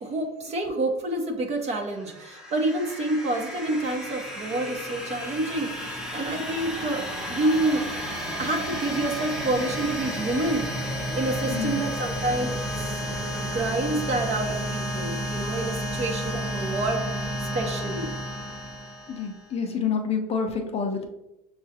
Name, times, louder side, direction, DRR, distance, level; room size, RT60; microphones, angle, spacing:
voice 1, 0.0-7.9 8.4-10.7 11.2-13.0 13.4-17.0 17.5-18.1, right 2 dB, 35° right, 3 dB, 0.9 m, -28 dB
sound 1, 1.9-19.5, equal, 5° right, 0.9 m, -32 dB
voice 2, 11.5-11.8 19.1-21.1, left 6 dB, 35° left, 3 dB, 0.6 m, -28 dB
6.3 x 2.4 x 2.7 m, 0.91 s
supercardioid pair, 100°, 19 cm